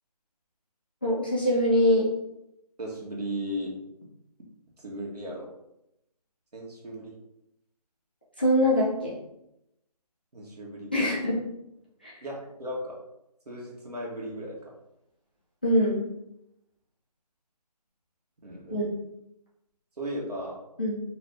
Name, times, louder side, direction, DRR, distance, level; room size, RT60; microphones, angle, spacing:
voice 1, 1.0-2.1 8.4-9.1 10.9-11.4 12.0-12.1 15.6-16.0 18.7-18.9 20.8-21.0, equal, 15° left, -9 dB, 0.5 m, -23 dB
voice 2, 2.8-3.7 4.8-5.5 6.5-7.1 10.3-11.1 12.2-13.0 13.5-14.7 18.4-18.7 20.0-20.6, equal, 70° right, -3 dB, 1.4 m, -36 dB
4.1 x 2.7 x 3.4 m, 0.84 s
figure-of-eight pair, 170°, 21 cm